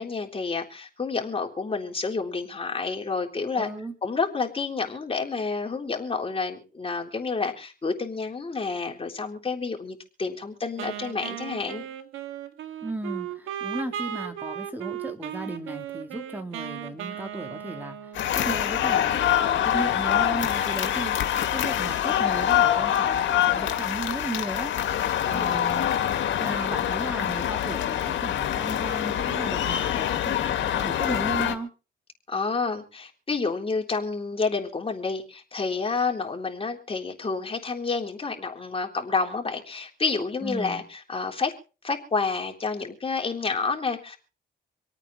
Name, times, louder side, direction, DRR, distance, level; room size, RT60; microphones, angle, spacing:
voice 1, 0.0-3.7 4.0-11.8 25.2-25.8 32.3-41.5 41.8-44.2, left 4 dB, 30° left, 2 dB, 3.7 m, -29 dB
voice 2, 3.6-3.9 12.8-24.7 25.3-25.9 26.4-31.7 40.4-40.8, right 2 dB, 10° right, 5 dB, 3.1 m, -35 dB
Wind instrument woodwind instrument, 10.8-18.7, right 10 dB, 90° right, 1.7 m, -36 dB
sound 1, 18.1-31.5, left 10 dB, 70° left, 1.8 m, -25 dB
26.5 x 9.0 x 4.2 m, 0.35 s
cardioid pair, 90°, 20 cm